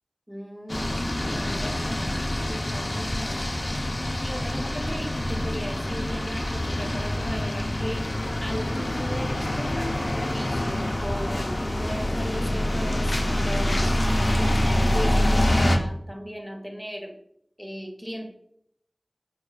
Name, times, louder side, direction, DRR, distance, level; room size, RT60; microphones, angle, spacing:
voice 1, 0.3-3.4 4.2-8.1 8.4-17.1 17.6-18.3, equal, 5° right, 4 dB, 0.5 m, -37 dB
sound 1, 0.7-15.8, left 1 dB, 55° left, 0.4 m, -26 dB
4.8 x 2.3 x 2.3 m, 0.72 s
wide cardioid pair, 45°, 0 cm